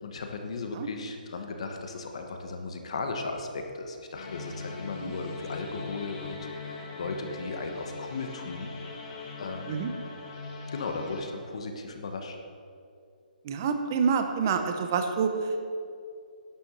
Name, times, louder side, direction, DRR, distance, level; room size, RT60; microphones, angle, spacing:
voice 1, 0.0-9.9 10.7-12.4, left 3 dB, 40° left, 4 dB, 1.3 m, -36 dB
sound 1, 4.1-11.2, left 3 dB, 25° left, 1.8 m, -40 dB
voice 2, 13.4-15.7, right 6 dB, 20° right, 7 dB, 0.7 m, -27 dB
11.5 x 7.1 x 7.3 m, 2.4 s
hypercardioid pair, 175°, 5 cm